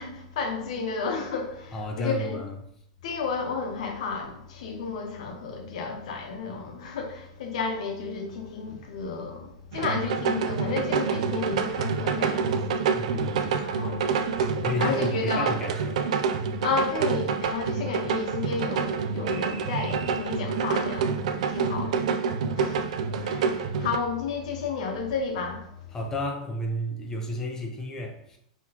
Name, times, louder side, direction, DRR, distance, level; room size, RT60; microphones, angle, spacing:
voice 1, 0.0-2.4 3.0-12.6 13.2-13.3 13.6-14.0 14.4-15.5 16.6-21.2 21.5-22.0 22.5-25.7, left 4 dB, 75° left, 0.8 m, -32 dB
voice 2, 1.7-2.6 12.9-13.6 13.9-14.1 14.6-16.1 21.5-21.9 25.9-28.4, left 1 dB, 15° left, 0.5 m, -32 dB
sound 1, 9.7-24.0, right 6 dB, 75° right, 0.3 m, -27 dB
3.8 x 3.0 x 2.8 m
supercardioid pair, 135°, 4 cm